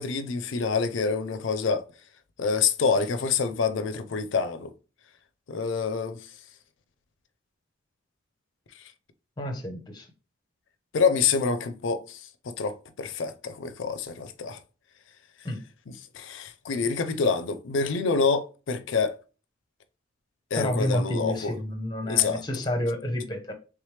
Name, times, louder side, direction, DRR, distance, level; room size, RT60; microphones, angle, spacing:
voice 1, 0.0-1.8 2.4-4.7 5.5-6.2 10.9-14.6 16.1-19.2 20.5-21.6 22.1-22.4, left 5 dB, 65° left, 0.4 m, -27 dB
voice 2, 9.4-10.1 15.4-15.6 20.6-23.5, left 1 dB, 20° left, 0.7 m, -29 dB
3.4 x 3.1 x 3.1 m
head